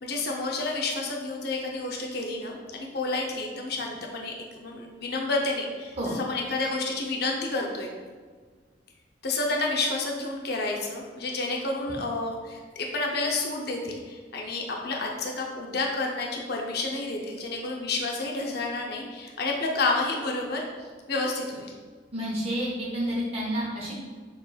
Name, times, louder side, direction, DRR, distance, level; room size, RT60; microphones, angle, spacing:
voice 1, 0.0-7.9 9.2-20.6 21.1-21.7, left 2 dB, 60° left, 0 dB, 0.6 m, -30 dB
voice 2, 22.1-23.9, equal, 35° right, -5 dB, 0.8 m, -30 dB
6.6 x 3.1 x 2.3 m, 1.5 s
head